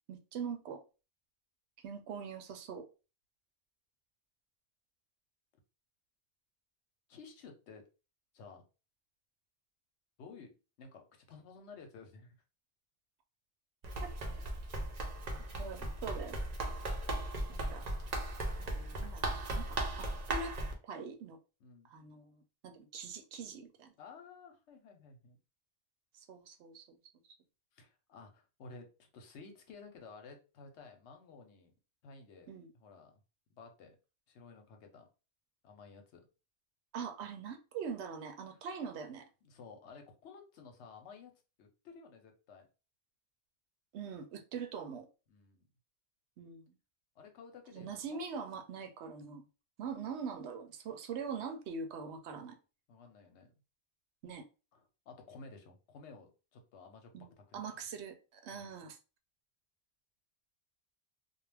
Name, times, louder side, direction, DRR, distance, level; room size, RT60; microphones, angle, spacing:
voice 1, 0.1-0.8 1.8-2.9 14.0-14.1 15.6-16.4 17.5-17.9 18.6-20.6 20.8-21.4 21.8-23.9 26.1-27.0 32.5-32.7 36.9-39.3 43.9-45.1 46.4-46.7 47.7-49.4 49.8-52.6 54.2-54.4 57.1-59.0, right 6 dB, 75° right, 0.8 m, -43 dB
voice 2, 7.1-7.8 8.3-8.6 10.2-10.5 10.8-12.3 21.6-21.9 24.0-25.4 27.7-31.7 32.0-33.2 33.5-34.0 34.3-35.0 35.6-36.2 38.5-38.6 39.4-41.3 41.6-42.7 45.3-45.6 47.2-48.2 52.9-53.5 54.7-57.1 57.4-57.7 58.5-58.7, left 4 dB, 75° left, 1.0 m, -54 dB
Run, 13.8-20.7, right 1 dB, 50° right, 0.5 m, -37 dB
2.3 x 2.1 x 3.2 m
omnidirectional pair, 1.2 m